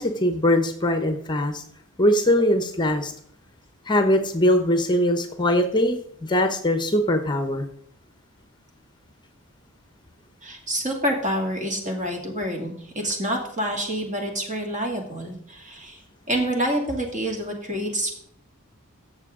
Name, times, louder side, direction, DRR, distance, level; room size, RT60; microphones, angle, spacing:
voice 1, 0.0-1.6 2.0-3.1 3.9-7.7, left 1 dB, 20° left, 7 dB, 0.8 m, -21 dB
voice 2, 10.4-16.0 16.3-18.1, right 1 dB, 35° right, 1 dB, 2.4 m, -27 dB
15.5 x 6.9 x 3.7 m, 0.68 s
head